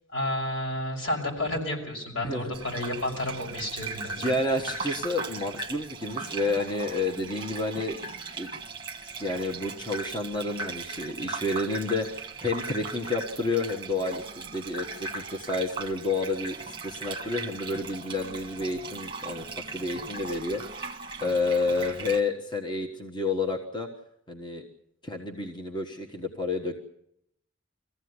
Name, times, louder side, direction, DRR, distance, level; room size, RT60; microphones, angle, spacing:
voice 1, 0.1-4.4, left 1 dB, 75° left, 1 dB, 5.9 m, -31 dB
voice 2, 2.2-2.5 4.2-8.5 9.0-19.4 19.7-20.6 21.2-23.9 24.3-24.6 25.0-26.8, left 2 dB, 20° left, 2 dB, 1.4 m, -30 dB
Gurgling / Bathtub (filling or washing), 2.5-22.2, right 4 dB, 25° right, 1.5 m, -38 dB
22.5 x 15.0 x 9.7 m, 0.75 s
head